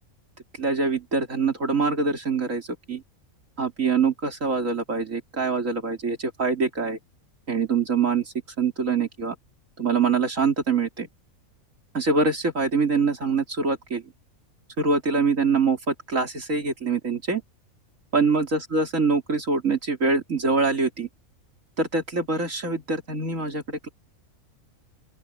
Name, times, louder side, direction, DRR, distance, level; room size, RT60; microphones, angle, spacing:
voice 1, 0.6-3.0 3.6-7.0 7.5-9.4 9.8-11.1 11.9-14.0 14.8-17.4 18.1-21.1 21.8-23.9, right 4 dB, 65° right, 3.6 m, -24 dB
open air
omnidirectional pair, 1.4 m